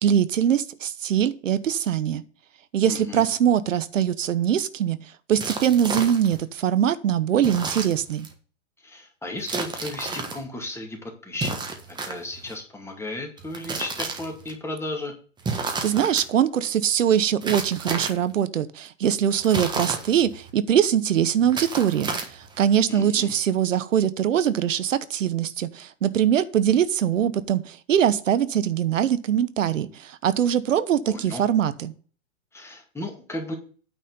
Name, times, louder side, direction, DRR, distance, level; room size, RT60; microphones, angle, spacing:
voice 1, 0.0-2.2 2.7-5.0 5.3-8.3 15.6-31.9, right 9 dB, 80° right, 14 dB, 1.0 m, -22 dB
voice 2, 2.8-3.3 8.8-11.5 11.9-15.1 22.9-23.3 31.0-31.4 32.5-33.5, left 1 dB, 5° left, 2 dB, 2.1 m, -34 dB
sound 1, 5.4-6.4 7.4-8.3 9.4-10.4 11.3-12.5 13.4-14.5 15.4-16.2 17.4-18.3 19.4-20.5 21.4-22.6, right 4 dB, 10° right, 1.3 m, -31 dB
9.2 x 4.3 x 7.0 m, 0.40 s
hypercardioid pair, 125°, 38 cm